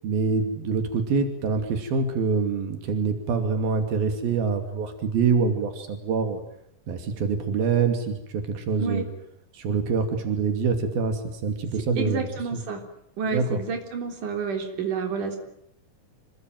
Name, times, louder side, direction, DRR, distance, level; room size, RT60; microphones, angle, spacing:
voice 1, 0.0-6.4 6.9-9.0 9.5-12.6 13.2-13.6, right 5 dB, 90° right, 6 dB, 4.5 m, -25 dB
voice 2, 12.0-12.8 13.2-15.4, right 5 dB, 60° right, 4 dB, 5.0 m, -29 dB
27.0 x 22.0 x 9.3 m, 0.75 s
omnidirectional pair, 4.1 m